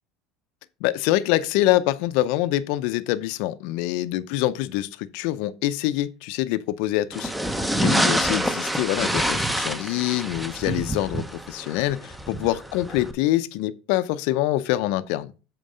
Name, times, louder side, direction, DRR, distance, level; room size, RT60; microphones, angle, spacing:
voice 1, 0.8-7.3 7.8-15.3, left 15 dB, 70° left, 0.6 m, -25 dB
sound 1, 7.1-13.1, right 1 dB, 5° right, 0.9 m, -26 dB
7.8 x 4.6 x 5.0 m
hypercardioid pair, 90°, 0 cm